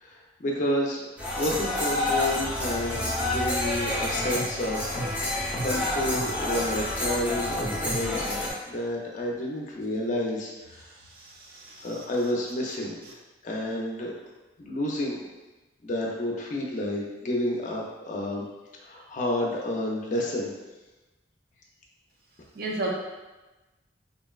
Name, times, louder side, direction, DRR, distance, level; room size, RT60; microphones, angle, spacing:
voice 1, 0.0-1.0 1.4-5.0 5.6-10.5 11.8-13.0 13.4-14.1 14.7-15.2 15.8-18.5 18.8-20.5, left 1 dB, 45° left, -2 dB, 0.5 m, -30 dB
sound 1, 1.2-8.5, left 1 dB, 10° right, 0.7 m, -28 dB
voice 2, 11.0-12.0 22.5-22.9, right 2 dB, 60° right, -2 dB, 0.5 m, -34 dB
3.8 x 2.1 x 2.3 m, 1.1 s
head